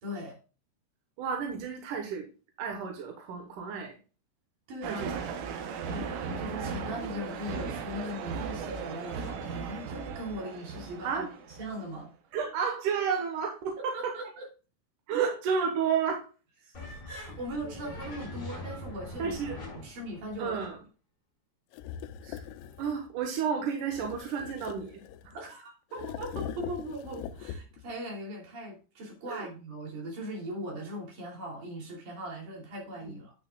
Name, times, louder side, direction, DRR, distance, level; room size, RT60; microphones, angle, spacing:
voice 1, 0.0-0.4 4.7-5.1 5.6-11.3 11.6-12.1 13.9-14.5 15.2-15.3 16.6-19.4 19.8-20.6 25.3-33.3, equal, 50° right, -2 dB, 4.2 m, -39 dB
voice 2, 1.2-2.3 2.6-4.0 4.8-5.1 11.0-11.3 12.3-14.2 15.1-16.3 19.2-19.6 20.4-20.8 22.2-22.4 22.8-25.4 29.3-29.5 33.0-33.1, right 6 dB, 65° right, 3 dB, 2.2 m, -31 dB
sound 1, 4.8-11.9, right 5 dB, 85° right, 1.8 m, -37 dB
sound 2, 16.7-20.8, left 1 dB, 20° left, 4.8 m, -42 dB
sound 3, 21.7-23.1 23.9-25.4 25.9-27.9, left 9 dB, 90° left, 3.0 m, -41 dB
9.5 x 8.8 x 2.4 m, 0.33 s
omnidirectional pair, 5.1 m